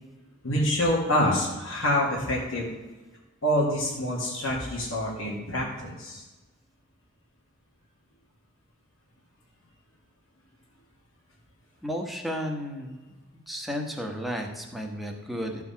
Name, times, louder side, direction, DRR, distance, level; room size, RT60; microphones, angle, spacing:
voice 1, 0.4-2.7 3.4-6.2, left 1 dB, 90° left, -6 dB, 2.1 m, -26 dB
voice 2, 11.8-13.1 13.5-15.6, equal, ahead, 1 dB, 1.2 m, -33 dB
13.5 x 4.8 x 5.7 m, 1.2 s
head